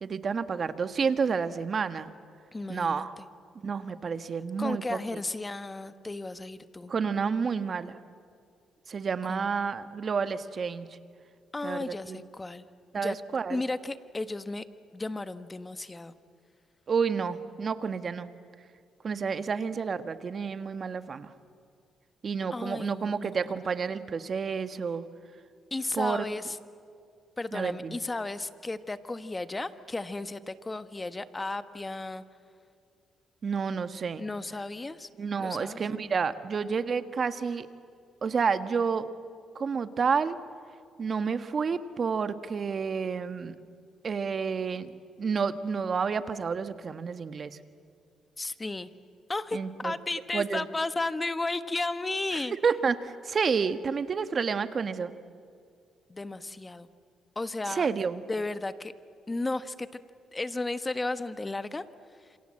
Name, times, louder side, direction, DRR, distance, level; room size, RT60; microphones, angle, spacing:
voice 1, 0.0-2.1 2.7-3.1 3.6-5.2 6.9-8.0 8.9-10.9 11.6-12.2 12.9-13.6 16.9-18.3 19.0-21.3 22.2-25.0 25.9-26.2 27.5-28.0 33.4-34.2 35.2-37.7 38.2-39.1 39.5-40.4 41.0-43.6 44.0-44.9 45.2-47.6 49.5-49.9 50.3-50.6 52.3-55.1 57.7-58.2, right 5 dB, 45° right, 11 dB, 1.4 m, -30 dB
voice 2, 2.5-3.2 4.6-6.9 9.3-9.5 11.5-12.6 13.0-13.2 13.5-14.6 14.9-16.1 22.5-23.3 23.6-23.7 25.7-26.6 27.4-32.2 34.2-35.1 35.4-36.1 48.4-48.9 49.3-49.6 49.8-52.6 56.1-56.9 57.3-57.9 58.3-58.9 59.3-60.0 60.3-61.8 62.3-62.4, left 2 dB, 20° left, 12 dB, 1.3 m, -34 dB
28.0 x 26.5 x 7.6 m, 2.3 s
cardioid pair, 90°, 0 cm